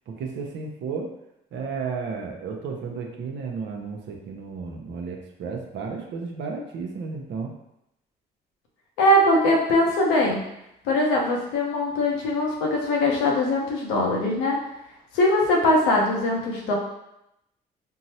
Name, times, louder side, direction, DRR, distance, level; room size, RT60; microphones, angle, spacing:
voice 1, 0.1-1.1 1.5-7.5, right 5 dB, 70° right, 1 dB, 0.6 m, -33 dB
voice 2, 9.0-10.4 10.8-14.6 15.1-16.7, left 1 dB, 90° left, -1 dB, 0.7 m, -21 dB
3.7 x 2.0 x 2.7 m, 0.83 s
supercardioid pair, 60°, 19 cm